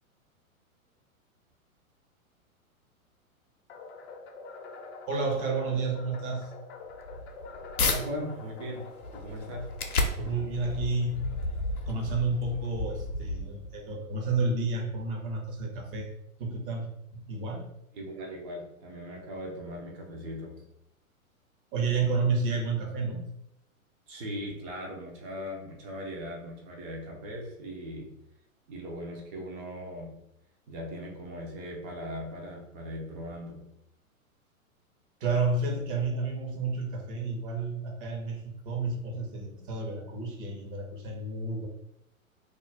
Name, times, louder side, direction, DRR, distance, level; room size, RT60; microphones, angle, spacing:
sound 1, 3.7-12.0, left 4 dB, 50° left, 0.5 m, -47 dB
voice 1, 5.1-6.5 10.2-11.3 11.9-16.1 16.4-17.6 21.7-23.3 35.2-41.7, right 3 dB, 40° right, 1 dB, 0.9 m, -31 dB
sound 2, 6.9-8.0 8.5-13.8, left 2 dB, 90° left, 0.6 m, -33 dB
voice 2, 7.8-9.7 17.9-20.7 24.1-28.1 28.7-30.2 30.7-33.7, equal, 20° right, 0 dB, 0.4 m, -39 dB
2.4 x 2.1 x 3.3 m, 0.80 s
figure-of-eight pair, 110°, 43 cm